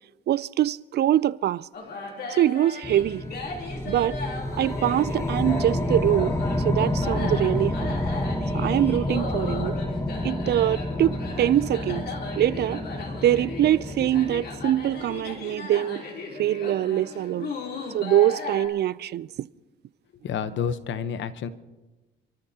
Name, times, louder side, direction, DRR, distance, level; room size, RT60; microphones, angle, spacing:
voice 1, 0.3-1.7 2.3-3.2 3.9-4.2 4.6-8.0 8.5-9.8 10.2-12.1 12.4-12.8 13.2-16.0 16.4-17.5 17.9-19.5, right 12 dB, 55° right, 0.4 m, -24 dB
sound 1, 1.7-18.7, left 3 dB, 55° left, 3.3 m, -37 dB
sound 2, 2.8-15.3, left 1 dB, 15° left, 1.1 m, -29 dB
voice 2, 20.2-21.5, left 7 dB, 70° left, 0.9 m, -29 dB
27.5 x 13.5 x 2.8 m
cardioid pair, 90°, 20 cm